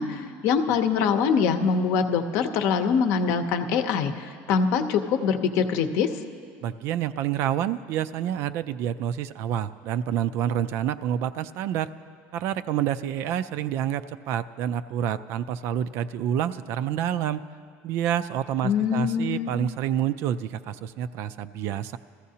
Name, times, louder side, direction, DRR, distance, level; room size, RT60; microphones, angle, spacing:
voice 1, 0.0-6.2 18.6-19.5, left 6 dB, 55° left, 8 dB, 0.7 m, -24 dB
voice 2, 6.6-11.9 12.3-17.4 17.8-22.0, right 10 dB, 50° right, 12 dB, 0.3 m, -28 dB
20.5 x 14.5 x 2.8 m, 2.1 s
cardioid pair, 165°, 6 cm